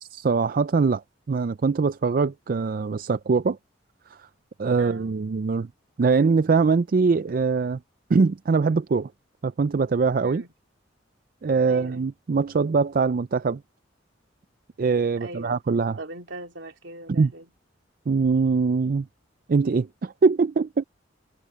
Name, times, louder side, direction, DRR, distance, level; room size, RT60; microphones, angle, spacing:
voice 1, 0.0-1.0 1.3-3.6 4.1-4.3 4.6-5.7 6.0-7.8 8.1-9.1 9.4-10.4 11.4-13.6 14.8-16.0 17.2-17.3 18.1-19.1 19.5-20.8, right 4 dB, 50° right, 0.4 m, -22 dB
voice 2, 4.8-5.2 10.2-10.5 11.7-12.1 15.2-15.6 16.0-17.5, right 2 dB, 70° right, 2.6 m, -40 dB
head